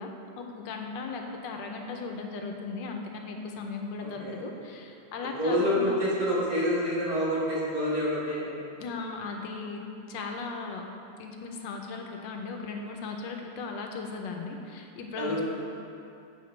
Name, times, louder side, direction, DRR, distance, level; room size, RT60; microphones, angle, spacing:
voice 1, 0.0-6.0 8.8-9.8 10.1-10.8 11.2-15.4, left 4 dB, 75° left, 3 dB, 1.3 m, -37 dB
voice 2, 4.0-4.3 5.3-8.5 15.2-15.4, equal, 20° right, -10 dB, 1.6 m, -27 dB
7.6 x 5.8 x 3.2 m, 2.6 s
omnidirectional pair, 2.0 m